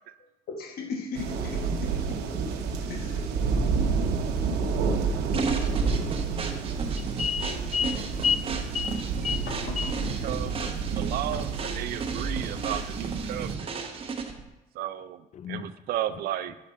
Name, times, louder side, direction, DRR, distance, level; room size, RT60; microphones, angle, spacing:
voice 1, 0.5-2.2 2.9-3.3 3.8-3.9 9.5-10.1 11.3-11.5, left 4 dB, 65° left, 1.2 m, -38 dB
sound 1, 1.1-13.5, right 5 dB, 85° right, 0.9 m, -30 dB
sound 2, 5.3-14.5, right 4 dB, 35° right, 1.0 m, -34 dB
voice 2, 7.1-8.5 8.7-9.0 9.2-9.5 9.8-9.9 15.4-15.6, left 6 dB, 40° left, 0.5 m, -29 dB
voice 3, 10.2-13.7 14.7-16.6, right 12 dB, 65° right, 0.4 m, -34 dB
8.4 x 5.1 x 4.4 m
cardioid pair, 110°, 17 cm